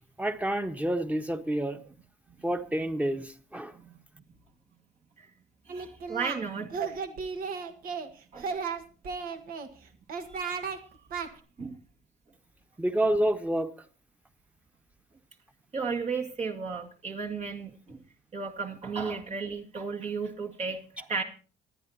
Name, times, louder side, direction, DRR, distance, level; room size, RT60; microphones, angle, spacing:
voice 1, 0.2-1.8 2.4-3.8 12.8-13.7, right 1 dB, 10° right, 1.4 m, -28 dB
voice 2, 5.7-6.8 8.3-8.5 10.3-11.0 11.6-11.8 15.7-18.0 18.3-21.2, right 5 dB, 40° right, 2.1 m, -34 dB
Singing, 5.7-6.4 6.7-8.1 8.4-9.7 10.1-10.8 11.1-11.3, right 5 dB, 60° right, 1.7 m, -34 dB
26.5 x 10.0 x 2.8 m
cardioid pair, 110°, 17 cm